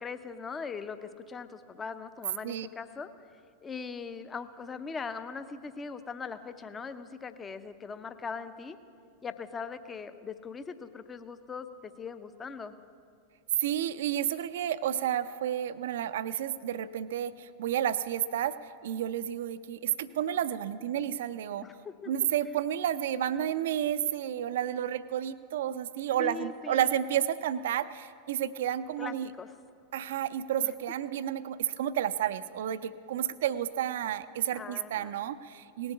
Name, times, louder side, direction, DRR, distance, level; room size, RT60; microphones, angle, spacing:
voice 1, 0.0-3.1 3.6-8.8 9.2-12.7 21.6-22.1 26.2-27.0 29.0-29.5 30.6-30.7 34.5-35.2, left 5 dB, 20° left, 11 dB, 0.6 m, -40 dB
voice 2, 13.6-18.5 18.8-21.7 22.1-29.3 29.9-35.9, right 10 dB, 55° right, 14 dB, 0.5 m, -31 dB
18.5 x 7.9 x 7.2 m, 2.3 s
figure-of-eight pair, 90°, 0 cm